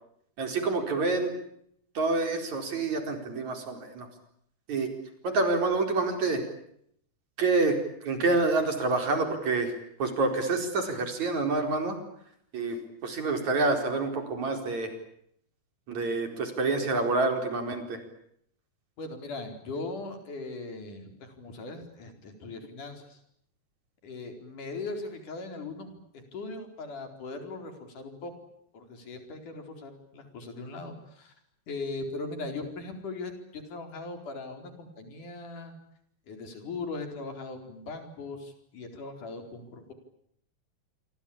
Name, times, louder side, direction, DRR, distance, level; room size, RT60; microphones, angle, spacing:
voice 1, 0.4-1.3 2.0-4.1 4.7-4.9 5.2-6.4 7.4-9.7 10.0-12.0 12.5-14.9 15.9-18.0, right 3 dB, 65° right, 6 dB, 5.8 m, -27 dB
voice 2, 19.0-23.2 24.0-28.3 28.7-31.3 31.7-35.7 36.3-39.9, left 3 dB, 75° left, 6 dB, 5.9 m, -39 dB
28.0 x 24.5 x 8.7 m, 0.71 s
omnidirectional pair, 3.6 m